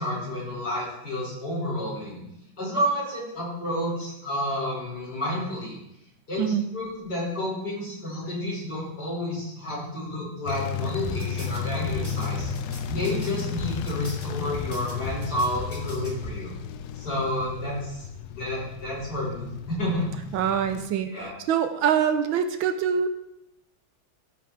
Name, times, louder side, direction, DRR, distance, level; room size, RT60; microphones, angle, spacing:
voice 1, 0.0-2.2 2.6-5.8 6.3-12.5 12.9-16.6 17.0-18.0 18.3-20.1 21.1-21.3, left 1 dB, 50° left, -6 dB, 5.6 m, -30 dB
voice 2, 6.4-6.7 20.3-23.1, right 8 dB, 75° right, 9 dB, 1.4 m, -24 dB
sound 1, 10.5-20.9, left 8 dB, 85° left, 0.8 m, -34 dB
sound 2, 11.0-16.4, left 1 dB, 15° left, 1.2 m, -38 dB
14.0 x 5.9 x 4.7 m, 0.85 s
omnidirectional pair, 2.3 m